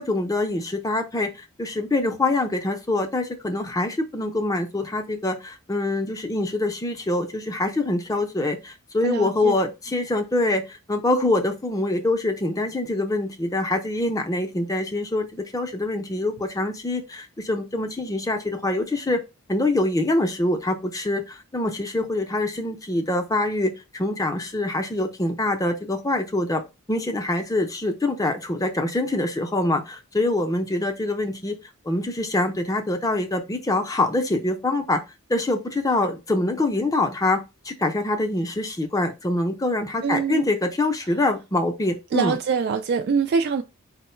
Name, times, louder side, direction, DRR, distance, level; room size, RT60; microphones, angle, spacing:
voice 1, 0.0-19.2 19.5-26.6 26.9-31.6 31.8-35.0 35.3-42.4, left 2 dB, 15° left, 0.6 m, -25 dB
voice 2, 9.0-9.6 40.0-40.5 42.1-43.6, right 5 dB, 45° right, 0.3 m, -24 dB
4.5 x 2.1 x 4.3 m
head